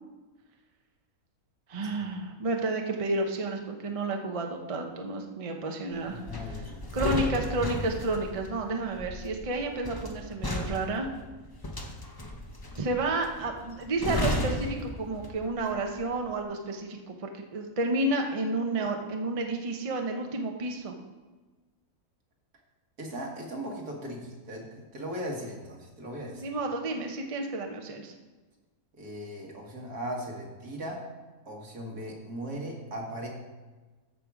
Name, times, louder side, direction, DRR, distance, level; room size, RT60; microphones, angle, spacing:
voice 1, 1.7-6.2 6.9-11.1 12.7-21.0 26.4-28.1, right 2 dB, 30° right, 3 dB, 0.8 m, -31 dB
voice 2, 6.1-6.8 23.0-26.5 29.0-31.0 31.5-33.3, equal, 75° right, -1 dB, 2.3 m, -38 dB
sound 1, 6.3-15.6 15.9-16.2, left 1 dB, 20° left, 0.7 m, -34 dB
13.5 x 5.6 x 4.8 m, 1.3 s
omnidirectional pair, 1.6 m